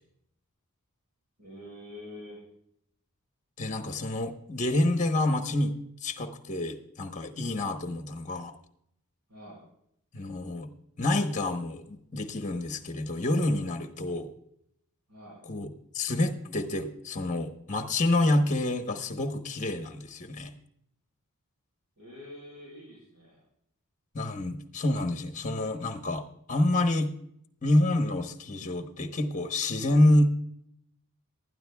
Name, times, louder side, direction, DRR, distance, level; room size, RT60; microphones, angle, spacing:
voice 1, 1.4-2.4 9.3-9.6 15.1-15.4 22.0-23.4, left 1 dB, 80° right, -5 dB, 5.2 m, -46 dB
voice 2, 3.6-5.7 6.0-8.5 10.1-10.7 11.0-14.3 15.5-15.7 15.9-20.5 24.1-27.1 27.6-30.3, left 1 dB, 35° left, 6 dB, 1.0 m, -27 dB
19.0 x 12.5 x 2.3 m, 0.74 s
head